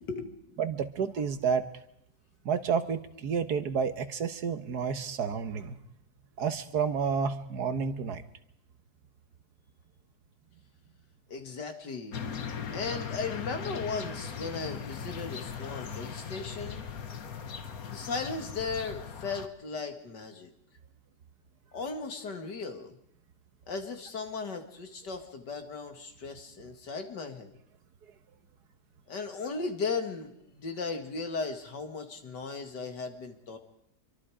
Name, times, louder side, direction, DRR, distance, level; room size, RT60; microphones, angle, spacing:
voice 1, 0.0-0.5 11.3-12.2 12.7-16.9 17.8-20.5 21.7-23.0 23.7-27.5 29.1-33.6, left 4 dB, 85° left, 6 dB, 2.7 m, -36 dB
voice 2, 0.6-1.6 2.5-5.8 6.4-8.2, right 6 dB, 70° right, 10 dB, 1.8 m, -30 dB
sound 1, 12.1-19.5, left 6 dB, 60° left, 1.7 m, -39 dB
26.0 x 23.5 x 5.0 m, 0.76 s
omnidirectional pair, 1.8 m